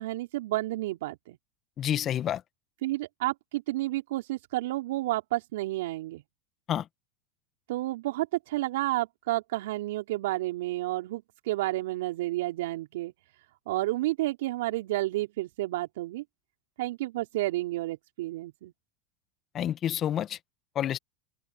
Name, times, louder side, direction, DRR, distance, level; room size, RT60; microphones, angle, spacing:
voice 1, 0.0-1.4 2.8-6.2 7.7-13.1 13.7-16.2 16.8-18.7, right 17 dB, 75° right, 4.5 m, -31 dB
voice 2, 1.8-2.4 6.7-6.8 19.5-20.4 20.8-21.0, left 10 dB, 40° left, 1.7 m, -28 dB
hypercardioid pair, 90°, 0 cm